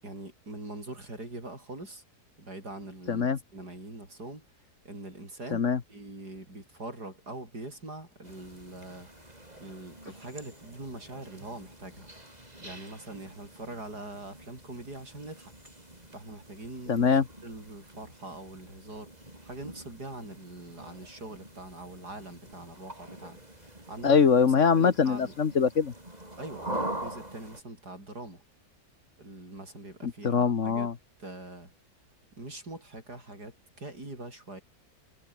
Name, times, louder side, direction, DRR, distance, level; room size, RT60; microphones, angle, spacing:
voice 1, 0.0-2.0 2.4-4.5 4.9-9.1 9.6-12.1 12.6-15.5 16.1-19.1 19.4-24.2 24.8-25.4 26.4-28.4 29.2-30.9 31.2-31.7 32.4-34.6, right 2 dB, 80° right, 8.6 m, -43 dB
voice 2, 3.1-3.4 5.5-5.8 16.9-17.2 24.0-25.9 30.0-30.9, left 6 dB, 50° left, 1.6 m, -23 dB
sound 1, 8.2-27.6, right 1 dB, 25° right, 6.6 m, -44 dB
omnidirectional pair, 1.7 m